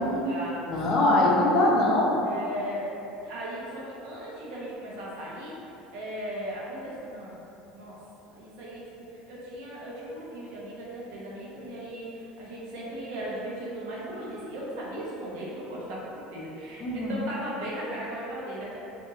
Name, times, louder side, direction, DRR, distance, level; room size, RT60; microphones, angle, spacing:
voice 1, 0.0-0.6 2.2-7.4 7.7-18.9, equal, 70° right, -6 dB, 0.9 m, -37 dB
voice 2, 0.6-2.3 16.8-17.2, left 1 dB, 40° left, -3 dB, 0.6 m, -23 dB
2.9 x 2.6 x 3.5 m, 2.9 s
cardioid pair, 160°, 0 cm